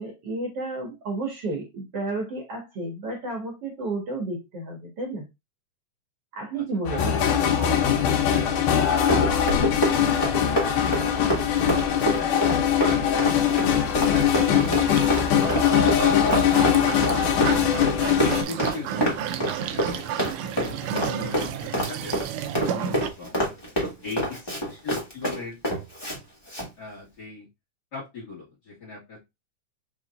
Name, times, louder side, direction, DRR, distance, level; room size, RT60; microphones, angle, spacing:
voice 1, 0.0-5.3 6.3-7.2, right 2 dB, 50° right, -1 dB, 2.3 m, -32 dB
sound 1, 6.9-18.4, left 9 dB, 80° left, 2.4 m, -22 dB
voice 2, 6.9-9.5 11.1-12.0 12.6-13.0 14.1-17.6 18.0-20.1 20.5-22.3 22.5-23.4 24.0-25.6 26.8-27.5 27.9-29.2, left 3 dB, 35° left, -7 dB, 2.2 m, -40 dB
Run, 8.8-26.2 26.5-26.7, equal, 15° left, 1.0 m, -27 dB
sound 2, 14.1-23.1, right 8 dB, 85° right, 1.5 m, -32 dB
5.4 x 3.8 x 2.5 m, 0.22 s
omnidirectional pair, 3.7 m